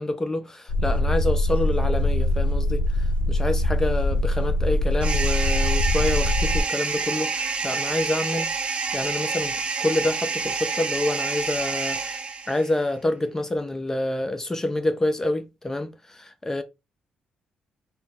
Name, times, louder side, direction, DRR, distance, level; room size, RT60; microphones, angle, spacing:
voice 1, 0.0-12.2 12.5-16.6, left 1 dB, 15° left, 0.6 m, -27 dB
sound 1, 0.7-6.6, left 1 dB, 60° left, 0.5 m, -23 dB
sound 2, 5.0-12.7, right 5 dB, 40° right, 0.6 m, -28 dB
4.1 x 2.1 x 3.5 m
cardioid pair, 75°, 3 cm